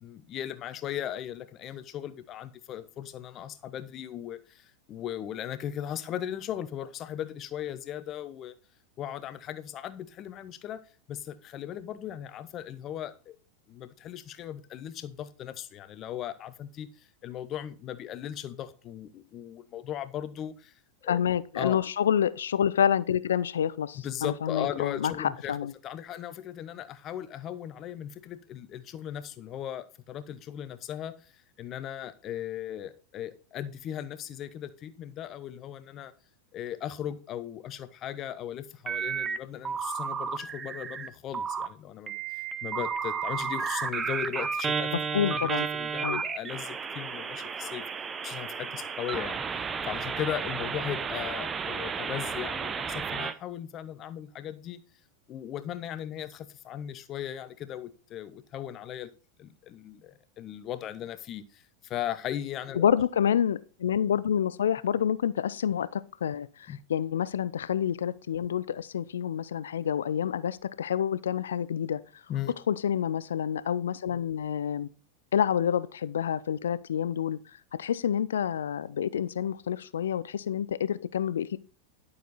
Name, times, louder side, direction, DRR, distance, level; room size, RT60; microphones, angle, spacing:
voice 1, 0.0-8.5 9.0-10.8 11.1-13.3 13.7-20.7 21.0-21.2 21.6-21.8 24.0-25.6 25.8-31.3 31.6-36.1 36.5-42.2 42.6-44.9 45.3-47.8 48.2-49.4 49.8-54.8 55.3-59.1 59.4-62.8 66.7-66.8 72.3-72.5, left 10 dB, 30° left, 1.1 m, -37 dB
voice 2, 21.1-25.7 44.9-45.7 46.0-46.2 62.7-72.0 72.7-74.9 75.3-77.4 77.7-81.6, left 9 dB, 65° left, 0.6 m, -28 dB
sound 1, 38.9-39.4 39.6-41.1 41.3-41.7 42.1-53.3, right 6 dB, 20° right, 0.8 m, -32 dB
12.0 x 6.9 x 4.1 m
figure-of-eight pair, 90°, 0 cm